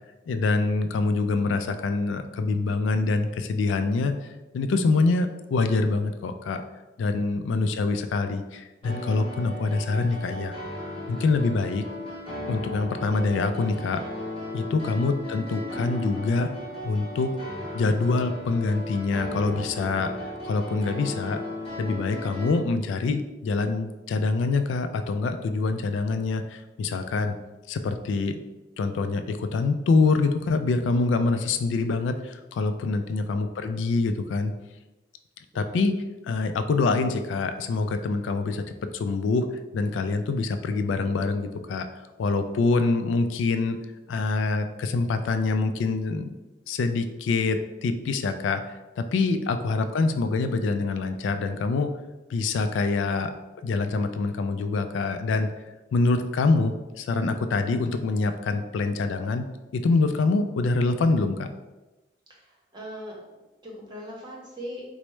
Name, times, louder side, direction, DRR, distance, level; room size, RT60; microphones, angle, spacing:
voice 1, 0.3-4.1 4.5-6.6 7.0-10.5 11.1-11.8 12.5-14.0 14.5-16.5 16.8-17.3 17.7-21.4 21.8-27.4 27.7-28.4 28.8-34.5 35.5-38.6 38.9-41.9 42.2-43.8 44.1-46.3 46.7-51.9 52.3-53.3 53.6-55.5 55.9-59.5 59.7-61.5, left 3 dB, 85° left, 9 dB, 0.3 m, -25 dB
sound 1, 8.8-22.5, left 1 dB, 30° left, 0.8 m, -36 dB
voice 2, 62.3-64.8, equal, 25° right, -2 dB, 0.7 m, -42 dB
4.4 x 2.0 x 3.1 m, 1.1 s
head